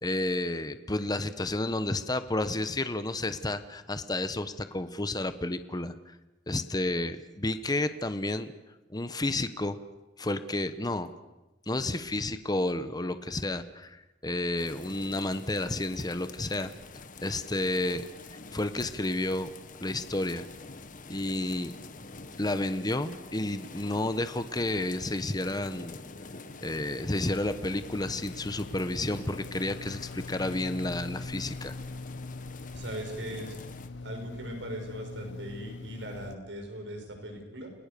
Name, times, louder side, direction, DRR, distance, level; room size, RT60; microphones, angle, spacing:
voice 1, 0.0-6.1 6.5-8.5 8.9-9.8 10.2-11.1 11.7-16.7 17.2-18.0 18.5-19.5 19.8-20.4 21.1-21.7 22.4-26.0 26.6-31.7, left 2 dB, 20° left, 11 dB, 1.0 m, -31 dB
sound 1, 14.6-33.9, left 3 dB, 45° left, 1.5 m, -47 dB
sound 2, 26.7-36.4, left 3 dB, 80° left, 0.8 m, -43 dB
voice 2, 32.7-33.6 34.0-37.7, right 1 dB, 85° right, 3 dB, 6.2 m, -39 dB
29.5 x 20.0 x 6.9 m, 1.0 s
head